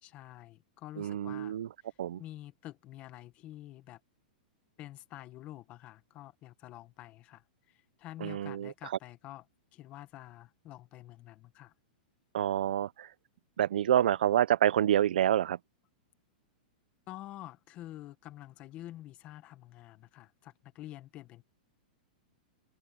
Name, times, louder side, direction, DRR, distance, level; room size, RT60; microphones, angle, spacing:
voice 1, 0.0-1.5 1.8-4.0 4.8-9.4 9.7-11.7 17.1-21.4, left 14 dB, 25° left, 1.4 m, -48 dB
voice 2, 1.0-1.7 2.0-2.2 8.2-8.7 12.3-13.1 13.6-15.6, right 11 dB, 80° right, 0.5 m, -27 dB
supercardioid pair, 165°, 5 cm